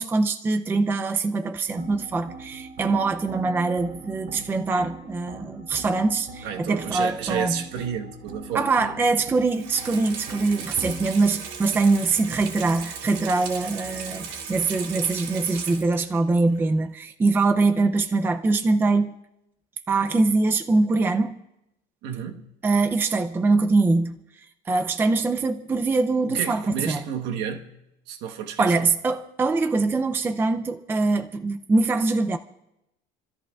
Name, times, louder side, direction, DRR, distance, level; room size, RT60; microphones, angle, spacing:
voice 1, 0.0-7.6 8.5-19.1 19.9-21.4 22.6-24.2 24.7-27.0 28.6-32.4, right 3 dB, 10° right, 0.4 m, -23 dB
sound 1, 1.7-11.0, right 2 dB, 45° right, 7.0 m, -42 dB
voice 2, 6.4-8.9 22.0-22.5 26.2-27.7 28.1-28.9, right 8 dB, 70° right, 1.3 m, -31 dB
Water tap faucet / Sink (filling or washing), 9.4-16.2 16.5-16.6, right 6 dB, 85° right, 3.4 m, -37 dB
28.5 x 13.5 x 2.4 m
cardioid pair, 165°, 18 cm